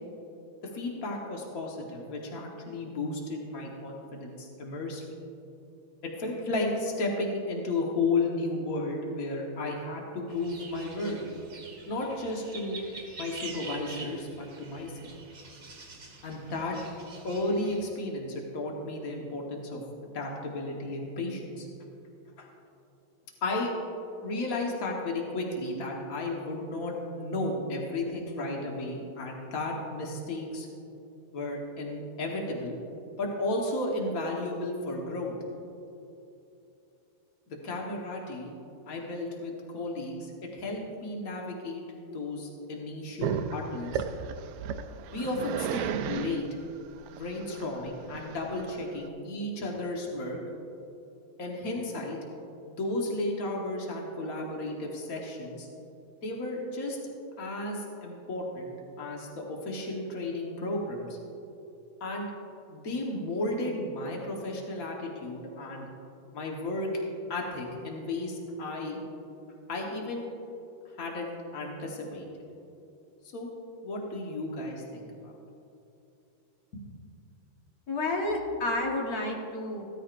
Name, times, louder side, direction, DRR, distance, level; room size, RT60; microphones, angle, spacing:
voice 1, 0.6-5.0 6.0-11.2 11.9-12.8 13.2-15.2 16.2-16.8 17.2-21.7 22.4-22.5 23.4-23.7 24.2-30.7 31.3-32.8 33.2-35.3 37.5-38.5 38.9-41.8 42.1-44.1 45.1-46.6 47.1-50.4 51.4-52.2 52.7-55.7 56.2-57.0 57.4-61.2 62.0-62.3 62.7-65.9 66.3-67.0 67.3-69.0 69.7-70.3 71.0-72.3 73.3-73.5 73.8-75.4 76.7-76.9, left 2 dB, 85° left, -1 dB, 0.7 m, -33 dB
sound 1, 10.3-17.8, right 4 dB, 40° right, 2.1 m, -46 dB
Growling, 43.2-49.1, right 8 dB, 80° right, 1.7 m, -34 dB
voice 2, 77.9-79.8, left 2 dB, 45° left, -1 dB, 1.3 m, -30 dB
16.5 x 13.5 x 2.5 m, 2.8 s
omnidirectional pair, 3.6 m